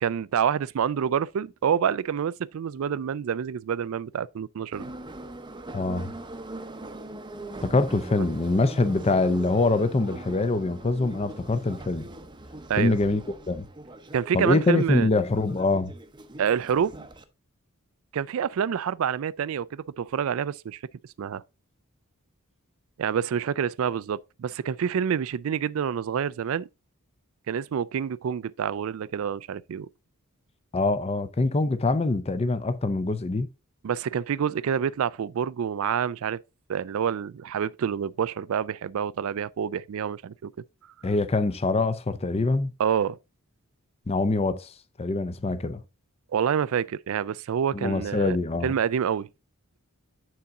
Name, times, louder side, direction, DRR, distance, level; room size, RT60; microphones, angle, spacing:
voice 1, 0.0-4.9 8.1-8.3 12.7-13.0 14.1-15.1 16.4-17.1 18.1-20.8 21.2-21.4 23.0-26.7 27.5-29.9 33.8-36.4 36.7-40.5 42.8-43.2 46.3-48.4 48.6-49.3, right 8 dB, 65° right, 0.3 m, -27 dB
Subway metro underground, 4.7-17.2, right 1 dB, 20° right, 0.7 m, -41 dB
voice 2, 5.7-6.1 7.6-12.1 12.8-13.7 14.3-15.9 30.7-33.5 41.0-42.7 44.1-45.8 47.7-48.7, left 3 dB, 30° left, 0.5 m, -24 dB
9.4 x 4.2 x 3.6 m
head